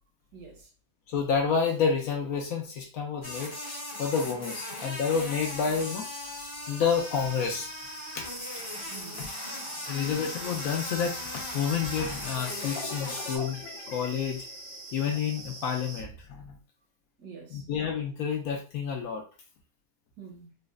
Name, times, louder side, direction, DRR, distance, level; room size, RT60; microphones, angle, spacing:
voice 1, 0.3-0.7 8.9-9.3 17.2-17.7 20.2-20.6, right 6 dB, 75° right, 1.5 m, -47 dB
voice 2, 1.1-3.6 4.0-6.1 6.7-7.7 8.1-8.2 9.2-9.3 9.9-14.5 14.9-16.6 17.5-19.2, left 6 dB, 70° left, 0.9 m, -29 dB
sound 1, 3.2-13.4, left 1 dB, 30° left, 0.5 m, -38 dB
sound 2, 6.9-16.0, right 2 dB, 60° right, 1.0 m, -44 dB
sound 3, 12.4-15.9, left 6 dB, 85° left, 1.3 m, -43 dB
4.0 x 2.0 x 2.3 m
omnidirectional pair, 1.8 m